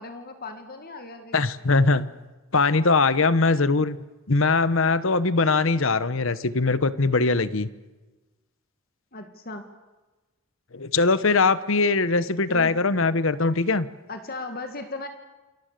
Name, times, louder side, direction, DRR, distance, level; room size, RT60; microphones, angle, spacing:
voice 1, 0.0-1.5 9.1-9.7 12.5-12.7 14.1-15.1, left 2 dB, 45° left, 6 dB, 1.9 m, -37 dB
voice 2, 1.3-2.1 2.5-4.0 4.3-7.7 10.7-13.9, left 3 dB, 65° left, 15 dB, 1.1 m, -21 dB
28.5 x 23.0 x 6.8 m, 1.2 s
head